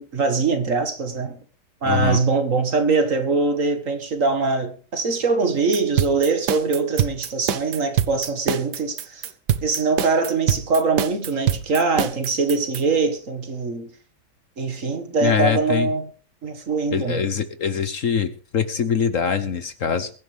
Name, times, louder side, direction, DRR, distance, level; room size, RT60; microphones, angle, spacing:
voice 1, 0.0-1.4 1.8-9.3 9.6-13.9 14.6-16.1 16.4-17.2, right 4 dB, 50° right, 2.1 m, -22 dB
voice 2, 1.8-2.2 15.2-15.9 16.9-20.1, left 7 dB, 55° left, 1.2 m, -23 dB
sound 1, 5.7-12.8, right 10 dB, 75° right, 1.5 m, -24 dB
22.0 x 10.5 x 3.4 m
omnidirectional pair, 1.8 m